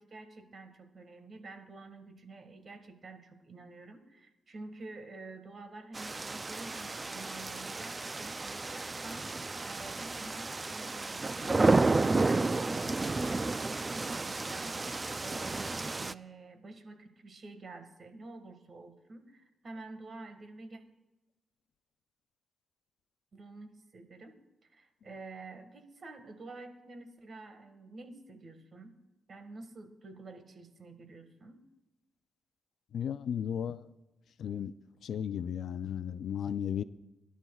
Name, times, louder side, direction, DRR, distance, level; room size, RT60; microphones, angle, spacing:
voice 1, 0.0-14.8 15.2-20.8 23.3-24.4 24.7-29.0 29.3-31.6, right 2 dB, 50° right, 7 dB, 1.7 m, -49 dB
sound 1, 5.9-16.1, right 3 dB, 30° right, 0.4 m, -31 dB
voice 2, 32.9-33.9 34.4-34.7 35.0-36.8, left 8 dB, 75° left, 14 dB, 0.4 m, -34 dB
22.0 x 11.5 x 2.4 m, 0.99 s
cardioid pair, 85°, 0 cm